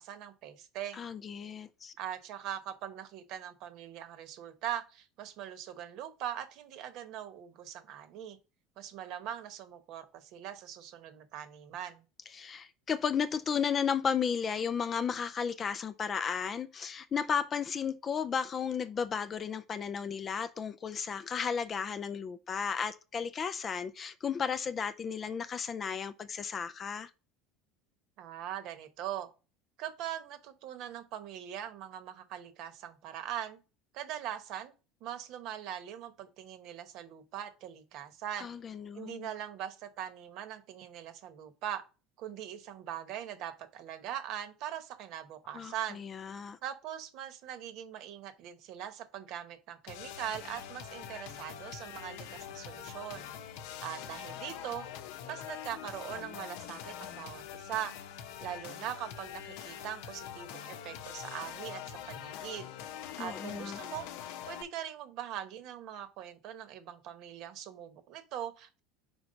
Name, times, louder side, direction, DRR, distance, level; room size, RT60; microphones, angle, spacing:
voice 1, 0.0-1.0 2.0-8.4 8.8-12.0 28.2-29.3 29.8-33.6 33.9-34.7 35.0-38.5 38.9-41.8 42.2-46.1 46.6-53.3 53.8-54.9 55.3-57.9 58.4-62.7 63.2-64.1 64.4-68.8, right 10 dB, 55° right, 1.0 m, -41 dB
voice 2, 0.9-1.9 12.3-27.1 38.4-39.3 45.5-46.6 63.2-63.8, left 7 dB, 25° left, 0.4 m, -34 dB
sound 1, 49.9-64.6, left 10 dB, 75° left, 0.8 m, -44 dB
5.4 x 4.6 x 3.9 m
cardioid pair, 155°, 0 cm